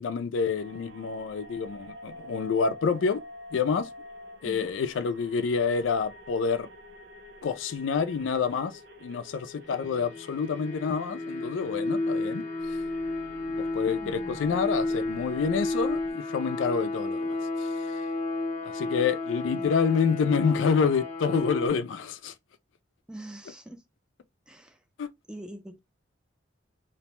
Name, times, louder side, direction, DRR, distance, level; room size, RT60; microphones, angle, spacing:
voice 1, 0.0-3.2 3.5-3.9 4.4-6.7 7.4-12.4 13.5-17.7 18.6-22.3 25.0-25.1, left 5 dB, 85° left, 0.3 m, -28 dB
sound 1, 0.6-16.1, left 1 dB, 65° right, 0.7 m, -48 dB
sound 2, 9.6-21.7, left 2 dB, 40° left, 0.8 m, -32 dB
voice 2, 14.0-14.6 19.5-19.7 23.1-23.8 24.5-24.8 25.3-25.8, right 1 dB, 5° right, 0.4 m, -44 dB
2.6 x 2.1 x 2.9 m
head